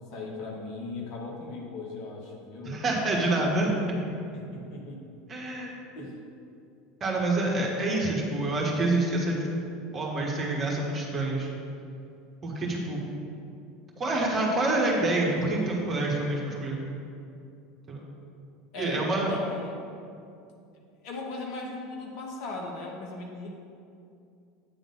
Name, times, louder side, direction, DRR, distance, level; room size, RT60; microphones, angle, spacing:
voice 1, 0.0-2.8 4.3-5.0 5.9-6.1 18.7-19.7 21.0-23.6, left 3 dB, 50° left, -1 dB, 1.2 m, -38 dB
voice 2, 2.6-3.7 5.3-5.7 7.0-9.5 9.9-11.5 12.4-13.0 14.0-16.8 17.9-18.0 18.8-19.3, right 2 dB, 25° right, -2 dB, 1.5 m, -27 dB
8.6 x 3.8 x 6.4 m, 2.5 s
figure-of-eight pair, 75°, 0 cm